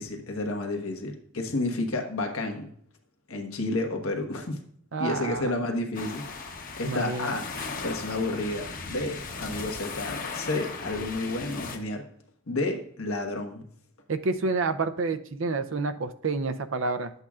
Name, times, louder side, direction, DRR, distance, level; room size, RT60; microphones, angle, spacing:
voice 1, 0.0-2.7 3.3-4.6 5.0-6.3 6.8-7.4 7.8-12.0 12.5-13.6, left 2 dB, 90° left, 2 dB, 1.3 m, -31 dB
voice 2, 4.9-5.5 6.9-7.3 14.1-17.1, right 3 dB, 65° right, 10 dB, 0.5 m, -29 dB
sound 1, 5.9-11.8, left 4 dB, 40° left, 0.9 m, -37 dB
11.5 x 7.9 x 2.4 m, 0.65 s
head